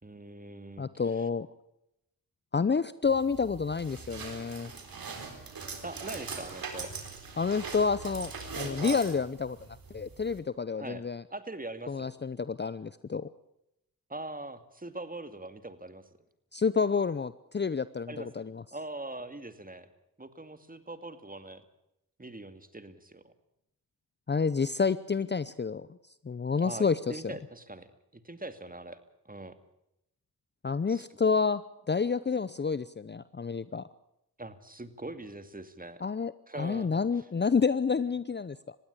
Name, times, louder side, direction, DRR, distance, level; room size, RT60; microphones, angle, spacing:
voice 1, 0.0-1.3 5.8-6.9 8.8-9.0 10.8-11.0 11.3-12.1 14.1-16.0 18.1-18.5 18.7-19.9 20.2-21.6 22.2-23.3 26.6-29.6 30.9-31.1 34.4-36.0 36.5-37.0, right 2 dB, 20° right, 11 dB, 2.3 m, -42 dB
voice 2, 0.8-1.5 2.5-4.7 7.4-9.6 9.9-11.2 11.9-13.3 16.5-18.6 24.3-25.9 26.2-27.3 30.6-31.6 31.9-33.9 36.0-38.8, left 5 dB, 25° left, 16 dB, 0.7 m, -29 dB
sound 1, 3.0-10.4, right 4 dB, 60° right, 4.2 m, -41 dB
21.0 x 16.0 x 8.5 m, 0.84 s
supercardioid pair, 45°, 39 cm